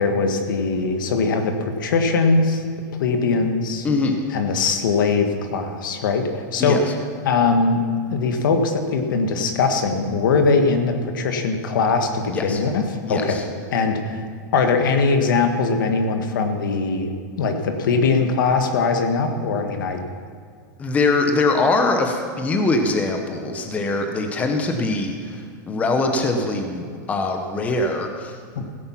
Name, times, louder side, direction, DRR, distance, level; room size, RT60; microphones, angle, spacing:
voice 1, 0.0-2.6 3.0-3.9 4.3-6.8 7.3-7.8 8.1-13.4 13.7-14.2 14.5-17.1 17.4-20.0, left 4 dB, 85° left, 5 dB, 1.6 m, -21 dB
voice 2, 3.8-4.2 6.6-6.8 12.3-12.6 13.1-13.4 20.8-28.7, left 3 dB, 15° left, 4 dB, 0.9 m, -22 dB
16.5 x 8.7 x 5.8 m, 2.1 s
supercardioid pair, 165°, 11 cm